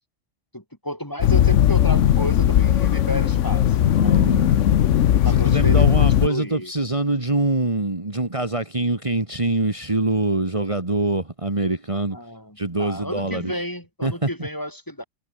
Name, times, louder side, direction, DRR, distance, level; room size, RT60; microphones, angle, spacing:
voice 1, 0.5-4.3 5.2-6.7 12.1-15.0, equal, 15° left, 4.6 m, -32 dB
sound 1, 1.2-6.3, left 10 dB, 70° left, 1.1 m, -17 dB
voice 2, 4.0-4.6 5.3-12.2 12.6-13.5 14.0-14.1, right 2 dB, 25° right, 2.2 m, -24 dB
omnidirectional pair, 1.3 m